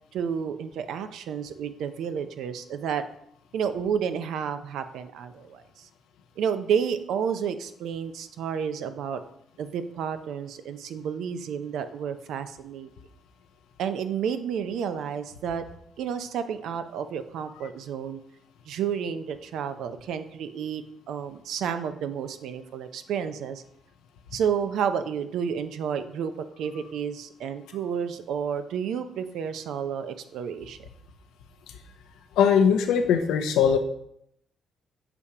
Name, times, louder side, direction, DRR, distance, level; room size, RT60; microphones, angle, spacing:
voice 1, 0.1-3.0 3.5-5.9 6.4-9.2 9.6-12.9 13.8-15.6 16.0-18.2 18.7-23.6 24.3-30.9, right 7 dB, 80° right, 10 dB, 0.5 m, -31 dB
voice 2, 32.4-33.8, left 7 dB, 90° left, 6 dB, 0.6 m, -20 dB
6.9 x 2.9 x 4.8 m, 0.73 s
cardioid pair, 90°, 0 cm